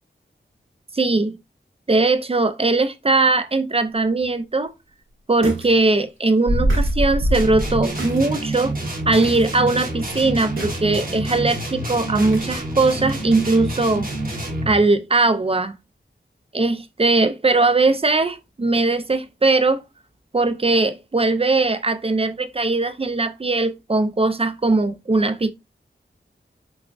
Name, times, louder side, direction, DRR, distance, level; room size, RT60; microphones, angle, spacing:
voice 1, 0.9-1.3 1.9-4.7 5.3-8.7 9.1-15.7 16.5-19.8 20.3-25.5, right 3 dB, 30° right, 0.4 m, -20 dB
sound 1, 4.2-4.3 5.4-5.8 6.0-6.1 6.5-8.2 8.6-8.7 9.2-9.5 9.7-10.0 10.6-11.1 12.2-12.5 12.9-13.0, right 1 dB, 85° right, 1.6 m, -24 dB
sound 2, 7.3-14.8, right 1 dB, 45° right, 1.3 m, -28 dB
5.9 x 2.3 x 2.4 m
wide cardioid pair, 70°, 20 cm